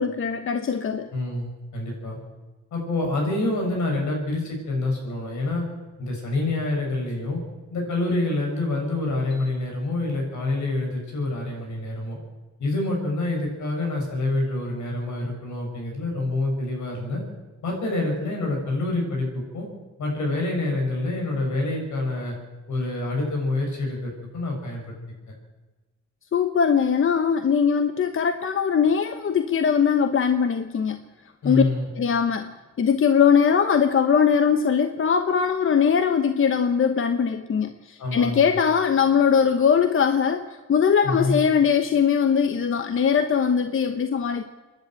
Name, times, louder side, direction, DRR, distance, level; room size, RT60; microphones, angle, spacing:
voice 1, 0.0-1.1 26.3-31.0 31.4-31.6 31.9-44.4, left 7 dB, 45° left, 9 dB, 1.0 m, -21 dB
voice 2, 1.1-2.2 2.7-5.6 6.0-7.4 7.7-12.2 12.6-17.2 17.6-19.7 20.0-22.4 22.7-24.9 31.4-31.9 38.0-38.6 41.0-41.4, left 2 dB, 70° left, 1 dB, 6.7 m, -27 dB
26.5 x 11.0 x 9.1 m, 1.2 s
cardioid pair, 90°, 30 cm